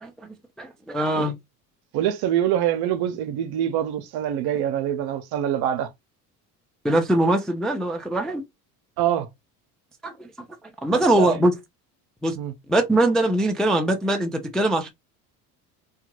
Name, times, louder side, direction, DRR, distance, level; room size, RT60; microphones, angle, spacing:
voice 1, 0.6-1.4 6.8-8.4 10.0-10.3 10.8-11.5 12.2-12.4 12.7-14.9, right 1 dB, ahead, 0.4 m, -22 dB
voice 2, 1.9-5.9 9.0-9.3 10.9-11.4 12.4-12.5, right 10 dB, 55° right, 0.7 m, -25 dB
2.8 x 2.3 x 2.9 m
hypercardioid pair, 75°, 46 cm